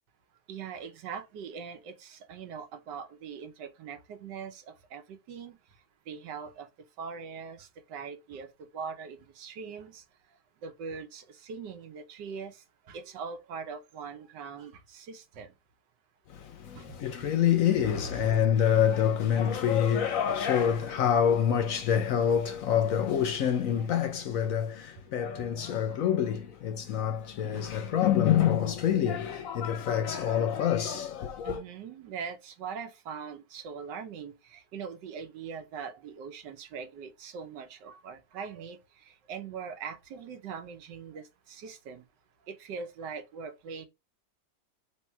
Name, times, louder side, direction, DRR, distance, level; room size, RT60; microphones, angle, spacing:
voice 1, 0.5-5.5 6.1-6.7 7.0-8.5 8.7-10.0 10.6-12.6 12.9-15.5 16.7-16.8 17.8-18.3 31.4-38.8 39.3-42.0 42.5-43.9, right 6 dB, 90° right, 1.5 m, -41 dB
voice 2, 16.3-31.6, left 9 dB, 65° left, 0.9 m, -26 dB
3.3 x 3.1 x 4.4 m
omnidirectional pair, 1.8 m